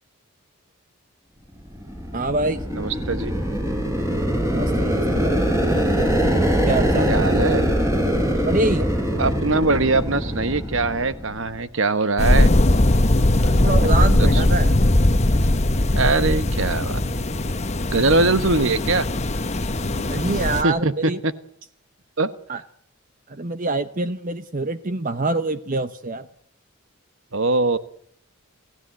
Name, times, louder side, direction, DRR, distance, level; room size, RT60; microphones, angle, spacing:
sound 1, 1.7-11.5, equal, 15° right, 5.9 m, -22 dB
voice 1, 2.1-2.6 4.5-5.4 6.6-7.1 8.4-8.9 13.3-14.8 19.8-21.2 22.5-22.6 23.3-26.3, right 2 dB, 40° right, 11 dB, 0.9 m, -25 dB
voice 2, 2.7-3.3 5.7-6.2 7.1-7.7 9.2-12.5 14.2-14.4 15.9-17.0 17.9-19.1 20.6-21.3 22.2-22.3 27.3-27.8, right 3 dB, 65° right, 13 dB, 1.3 m, -22 dB
sound 2, 12.2-20.6, left 1 dB, 30° left, 1.1 m, -19 dB
28.5 x 15.5 x 9.2 m, 0.70 s
head